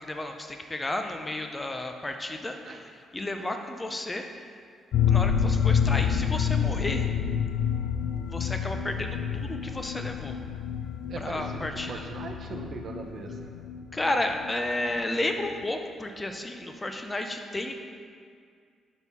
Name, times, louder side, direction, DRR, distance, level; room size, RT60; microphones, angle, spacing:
voice 1, 0.0-4.5 5.1-7.1 8.3-10.4 11.2-12.0 13.9-17.7, left 1 dB, 15° left, 5 dB, 0.4 m, -32 dB
sound 1, 4.9-14.5 14.8-14.9 15.2-15.3, left 7 dB, 80° left, 0.4 m, -28 dB
voice 2, 11.1-13.5, right 3 dB, 40° right, 3 dB, 0.6 m, -39 dB
5.4 x 4.2 x 5.9 m, 2.1 s
cardioid pair, 170°, 0 cm